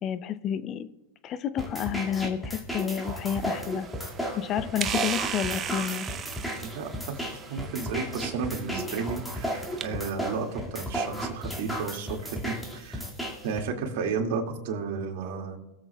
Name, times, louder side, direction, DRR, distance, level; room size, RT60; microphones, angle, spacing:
voice 1, 0.0-0.9 1.2-3.9 4.4-6.1, left 9 dB, 35° left, 15 dB, 0.5 m, -30 dB
sound 1, 1.6-13.6, equal, 5° left, 2.1 m, -34 dB
sound 2, 3.0-9.9, right 8 dB, 30° right, 0.6 m, -37 dB
voice 2, 6.6-13.1 13.4-15.6, right 5 dB, 60° right, 2 dB, 2.2 m, -33 dB
22.5 x 7.9 x 2.3 m, 1.1 s
hypercardioid pair, 120°, 0 cm